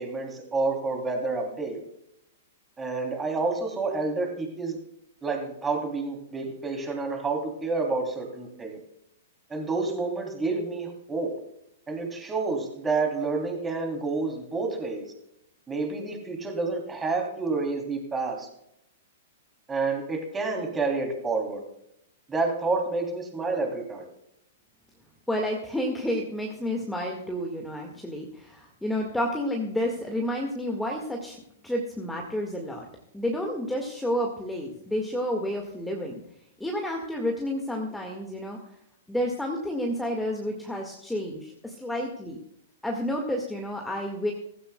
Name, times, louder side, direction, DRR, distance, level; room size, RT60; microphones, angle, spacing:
voice 1, 0.0-1.8 2.8-4.8 5.2-8.8 9.5-11.3 11.9-15.0 15.7-18.5 19.7-21.6 22.3-24.1, right 3 dB, 15° right, 2 dB, 3.1 m, -29 dB
voice 2, 25.3-31.4 31.6-32.9 33.1-36.1 36.6-38.6 39.1-42.4 42.8-44.3, equal, 5° left, 1 dB, 1.8 m, -30 dB
17.0 x 15.5 x 2.3 m, 0.78 s
figure-of-eight pair, 105°, 0 cm